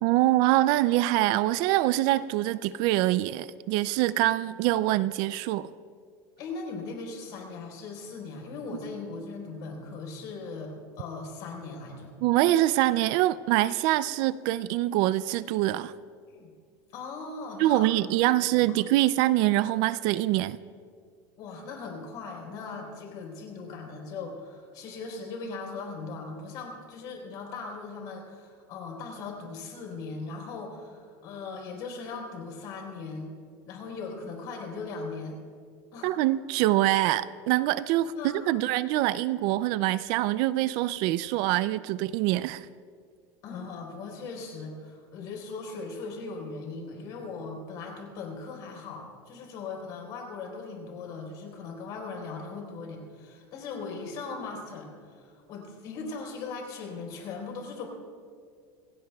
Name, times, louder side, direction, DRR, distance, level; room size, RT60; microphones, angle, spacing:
voice 1, 0.0-5.7 12.2-15.9 17.6-20.6 36.0-38.1 38.5-42.7, right 16 dB, 45° right, 0.3 m, -24 dB
voice 2, 6.4-12.1 16.3-16.5 16.9-17.9 18.6-18.7 21.4-33.3 33.7-35.4 35.9-36.2 38.0-38.7 43.4-57.9, left 4 dB, 45° left, 3.8 m, -39 dB
27.0 x 16.5 x 2.3 m
supercardioid pair, 170°, 10 cm